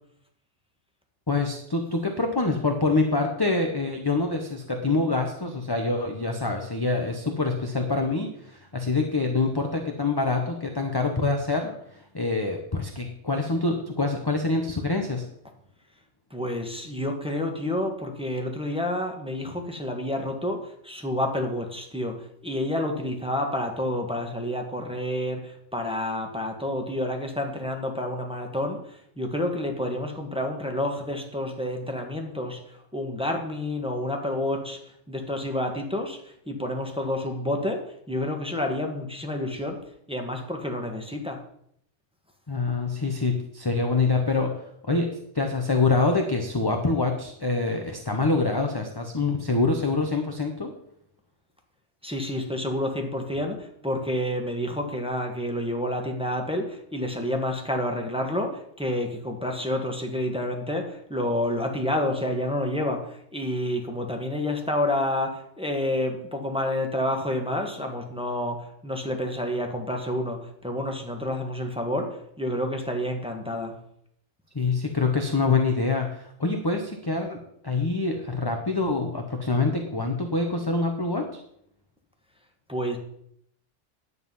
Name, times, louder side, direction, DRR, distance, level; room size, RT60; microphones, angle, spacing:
voice 1, 1.3-15.2 42.5-44.6 44.9-50.7 74.5-81.4, left 3 dB, 20° left, 3 dB, 0.9 m, -25 dB
voice 2, 16.3-39.8 40.1-41.4 52.0-73.8 82.7-83.0, left 1 dB, 5° right, 2 dB, 1.5 m, -29 dB
10.0 x 8.1 x 5.5 m, 0.71 s
omnidirectional pair, 1.3 m